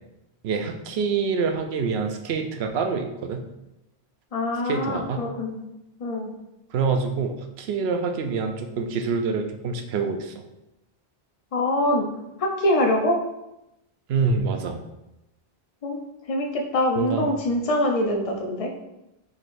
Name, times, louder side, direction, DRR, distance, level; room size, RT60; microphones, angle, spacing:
voice 1, 0.4-3.4 4.6-5.2 6.7-10.4 14.1-14.8 17.0-17.4, right 5 dB, 75° right, 5 dB, 0.8 m, -26 dB
voice 2, 4.3-5.6 6.0-6.3 11.5-12.1 12.4-13.2 15.8-18.7, left 1 dB, 40° left, 1 dB, 0.7 m, -24 dB
4.7 x 4.0 x 2.5 m, 0.91 s
omnidirectional pair, 1.1 m